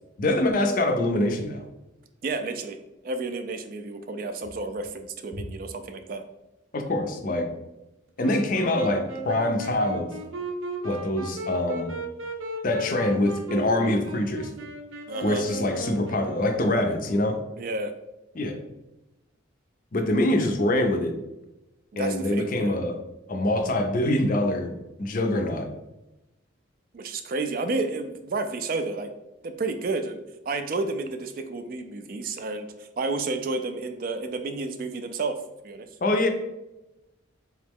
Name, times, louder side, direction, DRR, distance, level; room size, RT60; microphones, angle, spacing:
voice 1, 0.2-1.6 6.7-7.5 8.2-10.1 10.8-11.9 12.6-14.5 15.2-17.4 18.3-18.6 19.9-21.1 22.0-23.0 23.3-25.7 36.0-36.3, left 1 dB, 40° left, 5 dB, 0.4 m, -24 dB
voice 2, 2.2-2.8 3.0-6.2 15.1-15.5 17.6-17.9 21.9-22.8 26.9-29.1 29.4-30.2 30.5-35.9, right 3 dB, 45° right, 8 dB, 0.3 m, -31 dB
Wind instrument woodwind instrument, 8.2-16.9, right 2 dB, 90° right, 0.7 m, -36 dB
3.7 x 3.0 x 3.5 m, 0.96 s
head